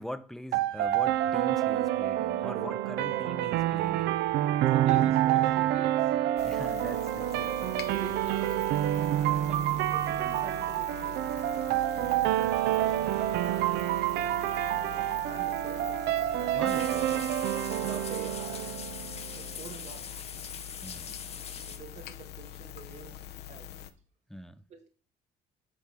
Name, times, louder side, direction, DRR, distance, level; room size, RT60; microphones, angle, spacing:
voice 1, 0.0-4.2 6.4-7.6 12.0-13.3 16.5-17.3 20.8-21.2 24.3-24.6, equal, ahead, 0.4 m, -43 dB
sound 1, 0.5-19.5, right 13 dB, 75° right, 0.4 m, -28 dB
voice 2, 2.5-3.3 4.7-6.1 6.7-9.0 9.3-11.4 12.7-16.6 17.6-18.9 19.3-20.1 21.5-23.7 24.7-24.9, right 6 dB, 40° right, 0.9 m, -47 dB
sound 2, 6.4-23.9, left 10 dB, 75° left, 0.6 m, -44 dB
sound 3, 16.6-21.8, left 7 dB, 35° left, 0.8 m, -42 dB
8.3 x 3.4 x 5.1 m
cardioid pair, 110°, 17 cm